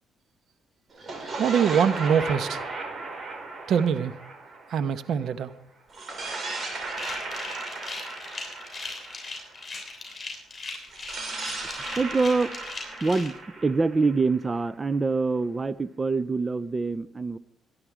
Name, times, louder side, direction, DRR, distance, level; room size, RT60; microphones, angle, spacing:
sound 1, 0.9-5.3 5.9-9.8 10.9-14.7, right 3 dB, 45° right, 5.2 m, -36 dB
voice 1, 1.4-2.6 3.7-4.1 4.7-5.5, right 7 dB, 70° right, 14 dB, 1.0 m, -23 dB
sound 2, 6.9-13.3, left 3 dB, 25° left, 7.5 m, -38 dB
voice 2, 12.0-12.5 13.0-17.4, right 3 dB, 25° right, 16 dB, 0.6 m, -25 dB
24.5 x 11.0 x 4.9 m, 0.71 s
cardioid pair, 90°, 0 cm